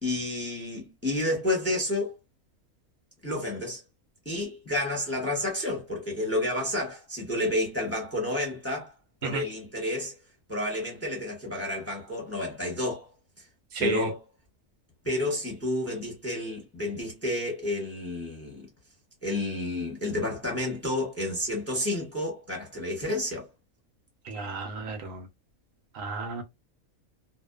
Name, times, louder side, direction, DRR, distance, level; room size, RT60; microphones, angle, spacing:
voice 1, 0.0-2.2 3.2-3.8 4.2-8.9 9.2-10.2 10.5-13.1 13.4-13.5 13.8-14.2 15.0-18.7 19.2-23.5, left 1 dB, 10° left, 0.8 m, -30 dB
voice 2, 13.7-14.1 24.3-25.2 25.9-26.4, right 4 dB, 70° right, 0.9 m, -32 dB
2.6 x 2.2 x 2.2 m
omnidirectional pair, 1.5 m